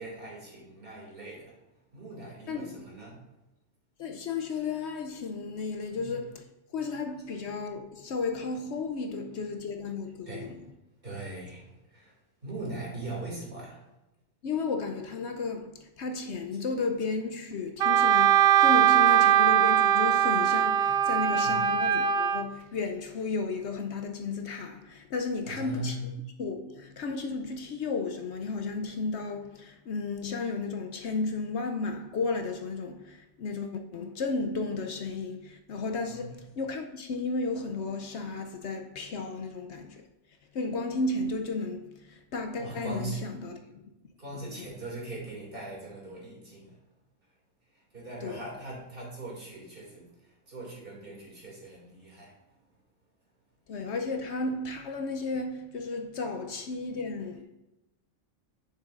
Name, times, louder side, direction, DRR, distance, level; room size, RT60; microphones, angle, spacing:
voice 1, 0.0-1.5 1.9-3.2 4.5-4.6 5.9-6.2 7.6-7.7 10.2-10.6 11.0-12.2 12.4-13.8 21.4-21.7 25.4-26.2 35.9-36.3 42.6-43.2 44.2-46.8 47.7-52.4 56.4-56.5, right 2 dB, 45° right, 2.6 m, -40 dB
voice 2, 4.0-6.4 6.7-10.6 14.4-26.0 26.4-40.1 40.5-43.8 44.3-44.7 48.2-48.5 53.7-57.4, left 3 dB, 65° left, 0.8 m, -33 dB
Wind instrument woodwind instrument, 17.8-22.4, right 10 dB, 60° right, 0.6 m, -21 dB
9.5 x 6.8 x 2.5 m
omnidirectional pair, 1.3 m